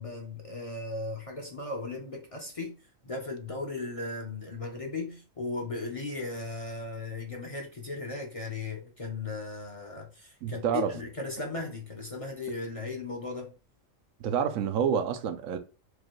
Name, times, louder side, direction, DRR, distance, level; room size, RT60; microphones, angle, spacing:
voice 1, 0.0-2.8 3.0-13.5, left 3 dB, 35° left, 0.7 m, -37 dB
voice 2, 10.4-10.9 14.2-15.6, right 8 dB, 80° right, 1.0 m, -28 dB
4.8 x 2.2 x 3.0 m
omnidirectional pair, 1.4 m